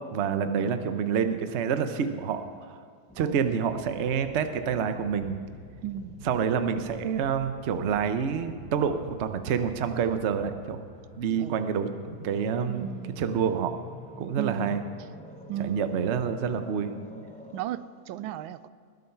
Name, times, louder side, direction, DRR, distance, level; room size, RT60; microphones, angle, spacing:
voice 1, 0.0-2.8 3.2-5.4 6.2-10.8 11.2-12.9 13.2-13.8 14.2-14.8 15.6-16.9, right 7 dB, 55° right, 9 dB, 0.8 m, -28 dB
sound 1, 3.1-17.6, left 2 dB, 10° left, 0.3 m, -47 dB
voice 2, 5.8-6.1 11.3-11.6 12.3-12.4 12.7-13.2 14.4-14.8 15.5-16.1 17.5-18.7, right 11 dB, 85° right, 15 dB, 1.4 m, -35 dB
20.5 x 8.0 x 5.7 m, 2.1 s
omnidirectional pair, 2.1 m